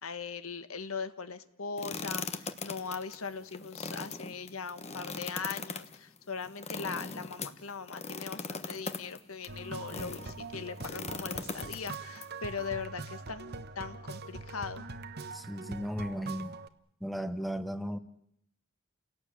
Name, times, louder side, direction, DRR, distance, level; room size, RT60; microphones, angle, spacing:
voice 1, 0.0-14.8, left 5 dB, 85° left, 1.4 m, -40 dB
sound 1, 1.8-10.3 10.8-12.2, left 4 dB, 30° left, 1.2 m, -40 dB
sound 2, 9.5-16.7, right 3 dB, 50° right, 1.2 m, -43 dB
voice 2, 15.3-16.5 17.0-18.0, equal, ahead, 1.2 m, -35 dB
29.5 x 17.5 x 8.7 m
head